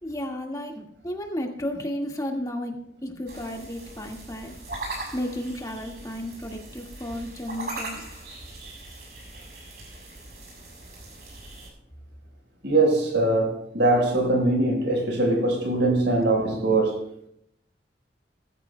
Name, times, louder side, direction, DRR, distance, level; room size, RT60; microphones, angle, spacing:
voice 1, 0.0-4.6 4.9-8.2, left 1 dB, 20° left, 1.8 m, -33 dB
sound 1, 3.3-11.7, right 2 dB, 60° right, 6.7 m, -40 dB
voice 2, 12.6-17.3, right 2 dB, 85° right, 4.5 m, -22 dB
20.5 x 14.5 x 2.3 m
head